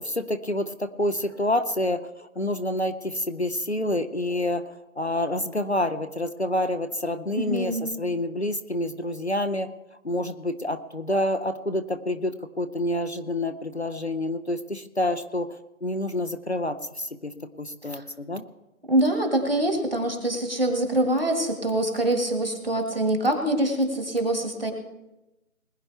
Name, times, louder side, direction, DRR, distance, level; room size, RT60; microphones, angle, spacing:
voice 1, 0.0-9.7 10.0-18.4, left 1 dB, 50° left, 10 dB, 0.6 m, -28 dB
voice 2, 7.4-7.9 18.0-18.1 18.9-24.7, right 1 dB, 45° right, 4 dB, 1.9 m, -24 dB
20.5 x 10.5 x 3.4 m, 0.98 s
figure-of-eight pair, 170°, 42 cm